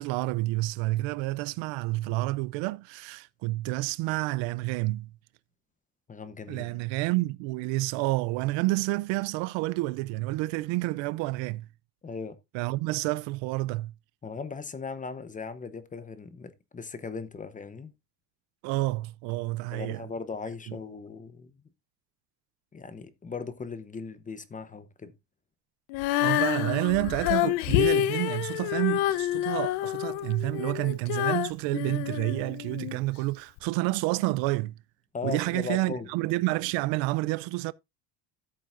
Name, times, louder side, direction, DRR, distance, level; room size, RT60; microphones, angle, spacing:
voice 1, 0.0-5.1 6.5-11.7 12.5-13.9 18.6-20.0 20.7-20.8 26.2-34.7 35.2-37.7, right 20 dB, 65° right, 0.5 m, -29 dB
voice 2, 6.1-6.8 12.0-12.4 14.2-17.9 19.7-21.5 22.7-25.1 35.1-36.1, left 5 dB, 15° left, 0.8 m, -38 dB
Female singing, 25.9-33.0 33.6-33.7, left 14 dB, 90° left, 0.9 m, -28 dB
13.5 x 7.5 x 2.5 m
cardioid pair, 145°, 48 cm